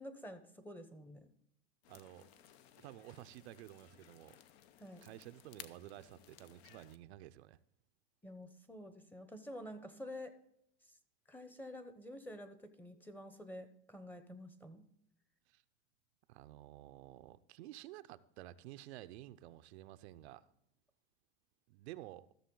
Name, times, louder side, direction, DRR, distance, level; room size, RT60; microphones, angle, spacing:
voice 1, 0.0-1.3 4.8-5.0 8.2-10.4 10.8-10.9 11.3-14.8, left 1 dB, 5° left, 0.8 m, -49 dB
sound 1, 1.8-7.0, left 10 dB, 70° left, 0.8 m, -59 dB
voice 2, 1.9-2.3 2.8-4.4 5.0-7.6 15.5-15.6 16.3-20.5 21.7-22.3, right 15 dB, 75° right, 0.6 m, -52 dB
14.0 x 6.5 x 3.8 m
supercardioid pair, 125°, 33 cm